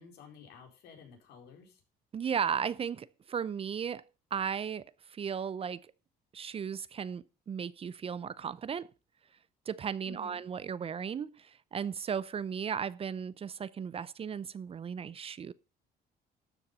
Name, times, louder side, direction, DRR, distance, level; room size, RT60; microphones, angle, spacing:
voice 1, 0.0-1.8 10.0-10.4, left 3 dB, 75° left, 4.5 m, -52 dB
voice 2, 2.1-4.0 4.3-5.9 6.3-8.9 9.7-15.5, right 7 dB, 35° right, 0.6 m, -36 dB
13.0 x 7.0 x 5.5 m
cardioid pair, 110°, 17 cm